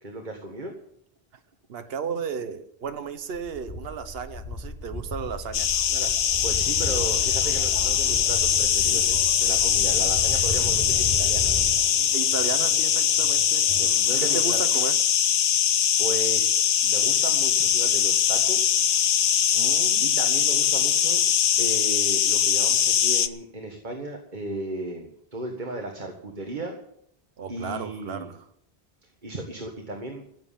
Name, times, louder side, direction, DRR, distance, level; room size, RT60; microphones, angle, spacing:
voice 1, 0.0-0.7 5.9-6.1 6.4-11.6 13.7-14.6 16.0-18.7 20.0-21.2 21.6-26.8 27.5-28.3 29.2-30.2, right 2 dB, 50° right, 3 dB, 1.9 m, -35 dB
voice 2, 1.7-5.7 12.1-13.7 14.2-15.0 19.5-20.1 27.4-28.5, right 6 dB, 70° right, 9 dB, 1.2 m, -34 dB
sound 1, 2.9-3.0 3.3-11.8, left 1 dB, 55° left, 5.4 m, -35 dB
sound 2, 5.5-23.3, left 9 dB, 75° left, 1.0 m, -22 dB
sound 3, 5.7-14.8, equal, 10° left, 4.4 m, -45 dB
15.5 x 7.6 x 8.6 m, 0.70 s
omnidirectional pair, 1.1 m